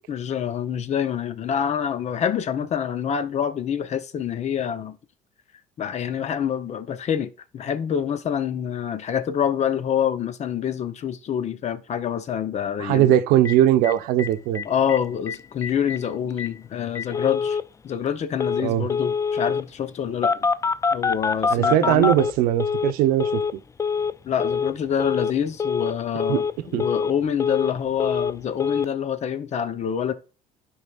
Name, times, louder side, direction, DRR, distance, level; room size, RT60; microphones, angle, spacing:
voice 1, 0.1-5.0 5.8-13.2 14.6-17.6 17.8-20.5 20.9-22.1 24.2-30.1, left 8 dB, 50° left, 0.8 m, -26 dB
voice 2, 12.8-14.6 18.6-18.9 21.5-23.4 26.3-26.4 26.7-26.8, right 12 dB, 85° right, 0.7 m, -20 dB
Telephone, 13.5-13.6 13.8-13.9 14.2-14.3 14.6-15.0 15.3-15.4 15.6-16.0 16.4-16.5 17.0-17.6 18.4-18.6 18.9-19.6 20.2-22.9 23.2-23.5 23.8-24.1 24.4-24.7 25.0-25.3 25.6-25.9 26.2-26.5 26.8-27.7 28.0-28.3 28.6-28.9, left 5 dB, 20° left, 0.3 m, -25 dB
12.0 x 4.8 x 2.4 m
cardioid pair, 95°, 15 cm